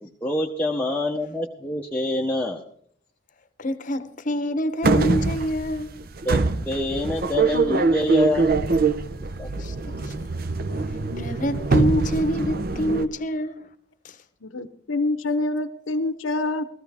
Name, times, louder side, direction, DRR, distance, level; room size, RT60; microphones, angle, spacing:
voice 1, 0.0-2.6 6.2-6.4 6.6-8.6 9.4-9.5, left 1 dB, 5° left, 0.8 m, -26 dB
voice 2, 3.6-5.9 9.5-10.1 11.2-13.7 14.0-14.1, equal, 40° left, 0.9 m, -26 dB
sound 1, 4.8-13.1, right 3 dB, 50° right, 0.7 m, -23 dB
voice 3, 14.4-16.6, left 2 dB, 85° left, 0.8 m, -26 dB
16.5 x 14.0 x 3.5 m
head